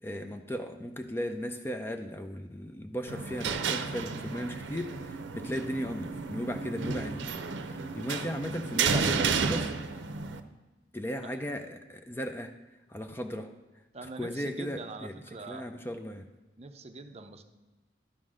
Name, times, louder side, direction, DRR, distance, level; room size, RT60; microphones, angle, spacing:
voice 1, 0.0-9.7 10.9-12.5 12.9-13.5 14.2-16.3, equal, 10° left, 6 dB, 0.4 m, -36 dB
sound 1, 3.1-10.4, right 5 dB, 85° right, 0.6 m, -32 dB
voice 2, 13.9-15.8 16.6-17.4, right 3 dB, 35° right, 7 dB, 0.5 m, -44 dB
11.5 x 3.8 x 6.3 m, 1.2 s
head